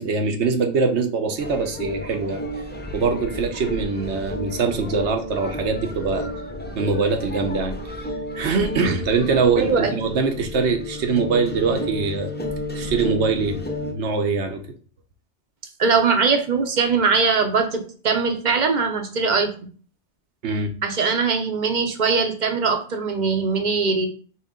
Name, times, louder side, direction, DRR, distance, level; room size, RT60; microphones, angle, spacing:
voice 1, 0.0-2.4 2.9-6.3 6.8-8.1 8.3-12.3 12.7-13.6 13.9-14.6 20.4-20.7, right 4 dB, 75° right, 5 dB, 1.0 m, -23 dB
sound 1, 1.4-13.9, left 1 dB, 15° left, 0.4 m, -31 dB
voice 2, 9.6-9.9 15.8-19.5 20.8-24.1, right 5 dB, 45° right, 5 dB, 0.8 m, -21 dB
4.4 x 3.1 x 3.6 m, 0.42 s
omnidirectional pair, 1.2 m